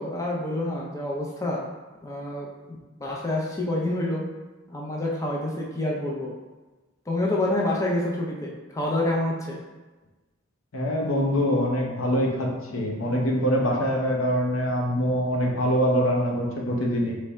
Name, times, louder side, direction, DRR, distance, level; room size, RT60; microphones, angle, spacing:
voice 1, 0.0-1.6 2.0-4.2 4.7-6.3 7.1-9.6, left 1 dB, 15° left, -3 dB, 0.5 m, -28 dB
voice 2, 10.7-17.1, equal, 85° left, 0 dB, 0.8 m, -24 dB
3.6 x 3.2 x 4.2 m, 1.2 s
head